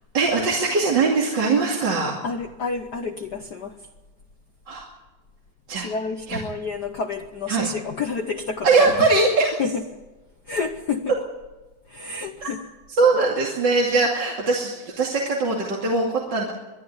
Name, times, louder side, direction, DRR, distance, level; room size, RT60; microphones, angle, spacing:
voice 1, 0.1-2.2 4.7-4.9 5.7-5.9 6.3-6.4 7.5-7.7 8.6-9.6 12.4-12.5 13.0-16.5, right 3 dB, 40° right, -2 dB, 2.8 m, -21 dB
voice 2, 2.2-3.9 5.8-9.0 9.6-9.9 10.5-11.2 11.9-12.6, left 4 dB, 85° left, 6 dB, 0.9 m, -29 dB
23.5 x 12.0 x 9.7 m, 1.1 s
omnidirectional pair, 3.3 m